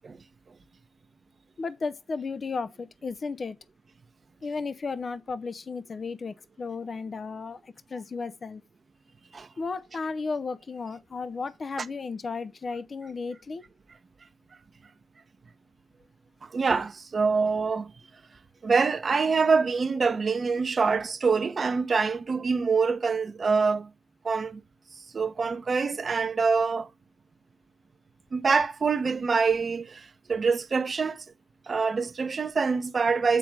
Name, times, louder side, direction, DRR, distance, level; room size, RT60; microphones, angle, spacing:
voice 1, 1.6-3.6 4.4-8.6 9.6-13.6, left 4 dB, 35° left, 0.6 m, -34 dB
voice 2, 16.4-17.9 18.6-23.9 24.2-24.6 25.1-26.9 28.3-31.2 31.7-33.4, right 5 dB, 35° right, 0.9 m, -25 dB
9.0 x 3.9 x 4.6 m
cardioid pair, 90°, 0 cm